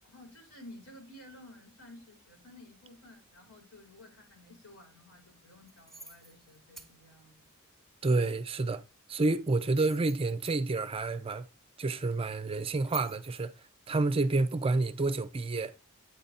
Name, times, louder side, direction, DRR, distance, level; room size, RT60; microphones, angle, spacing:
voice 1, 0.0-7.5, left 1 dB, 80° left, 4.3 m, -53 dB
sound 1, 5.7-6.9 9.5-10.6 12.8-13.4, right 3 dB, ahead, 1.1 m, -47 dB
voice 2, 8.0-8.8 9.1-11.5 11.8-13.5 13.9-15.7, right 3 dB, 25° right, 0.5 m, -29 dB
8.6 x 3.9 x 4.1 m
head